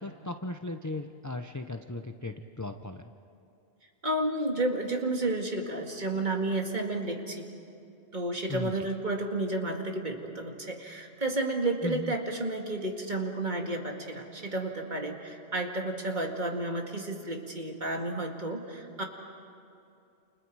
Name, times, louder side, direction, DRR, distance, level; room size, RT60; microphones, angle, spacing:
voice 1, 0.0-3.1 8.5-8.9 11.8-12.1, left 2 dB, 20° left, 6 dB, 0.6 m, -37 dB
voice 2, 4.0-7.5 8.1-19.0, right 2 dB, 40° right, 2 dB, 2.3 m, -31 dB
29.5 x 29.0 x 4.8 m, 2.6 s
omnidirectional pair, 1.2 m